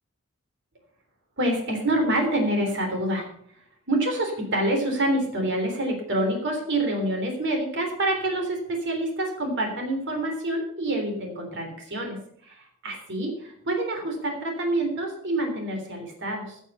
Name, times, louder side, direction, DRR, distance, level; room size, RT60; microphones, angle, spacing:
voice 1, 1.4-3.3 3.9-12.2 12.5-16.6, right 1 dB, 60° right, 3 dB, 3.5 m, -27 dB
15.5 x 7.3 x 6.7 m, 0.65 s
head